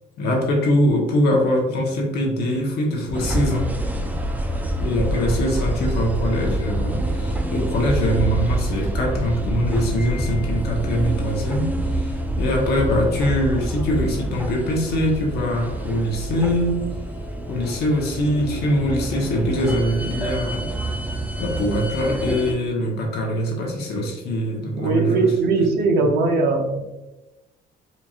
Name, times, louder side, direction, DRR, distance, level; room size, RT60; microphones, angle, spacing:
voice 1, 0.2-3.7 4.8-16.8 17.5-21.0 21.4-25.6 26.1-26.2, equal, 75° left, 0 dB, 1.2 m, -23 dB
sound 1, 3.1-22.5, right 1 dB, 10° right, 0.5 m, -26 dB
voice 2, 24.8-26.8, right 3 dB, 70° right, 2 dB, 0.9 m, -20 dB
4.4 x 3.0 x 2.5 m, 1.0 s
cardioid pair, 110°, 17 cm